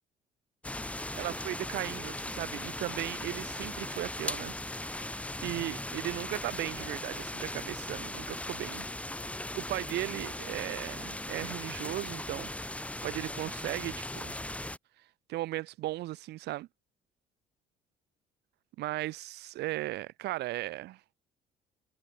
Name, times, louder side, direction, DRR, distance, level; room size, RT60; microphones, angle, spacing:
sound 1, 0.6-14.8, left 1 dB, 10° left, 7.1 m, -38 dB
voice 1, 0.8-5.1 5.4-8.9 9.5-14.3 15.3-16.7 18.8-21.0, right 17 dB, 80° right, 2.8 m, -37 dB
cardioid pair, 110°, 17 cm